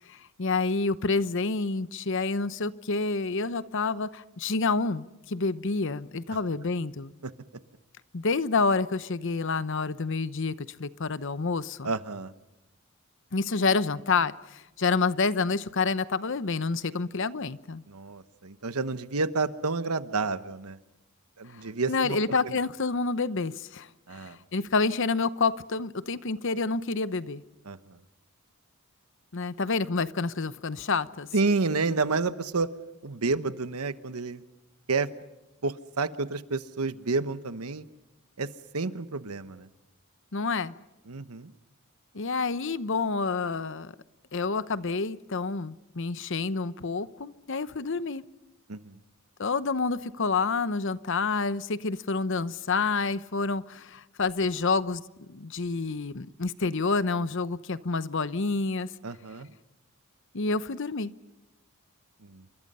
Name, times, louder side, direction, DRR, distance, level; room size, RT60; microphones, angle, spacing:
voice 1, 0.1-7.1 8.1-11.9 13.3-17.8 21.5-27.4 29.3-31.3 40.3-40.7 42.1-43.9 44.3-48.2 49.4-55.0 55.3-58.9 60.3-61.1, left 4 dB, 60° left, 14 dB, 0.8 m, -28 dB
voice 2, 11.8-12.3 17.9-20.8 21.4-22.2 22.4-22.5 24.1-24.4 27.7-28.0 31.3-32.7 33.0-34.4 34.9-35.1 35.6-37.8 38.4-38.5 38.7-39.7 41.1-41.5 48.7-49.0 59.0-59.5 62.2-62.4, right 3 dB, 90° right, 12 dB, 1.1 m, -30 dB
28.5 x 25.0 x 5.5 m, 0.98 s
head